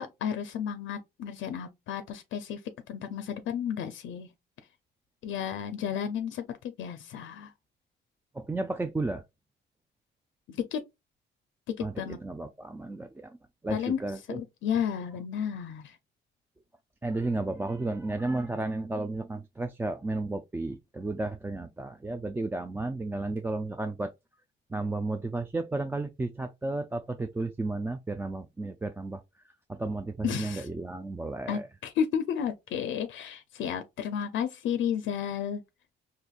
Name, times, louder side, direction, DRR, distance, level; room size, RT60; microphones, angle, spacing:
voice 1, 0.0-2.6 2.9-4.3 5.2-6.4 6.8-7.5 10.5-10.9 12.0-12.2 13.7-14.0 14.3-16.0 30.2-30.7 31.5-35.6, left 8 dB, 75° left, 0.5 m, -32 dB
voice 2, 8.3-9.2 11.8-13.4 13.6-14.4 17.0-24.1 24.7-31.7, right 2 dB, 10° right, 0.3 m, -33 dB
4.1 x 2.6 x 2.3 m
cardioid pair, 90°, 20 cm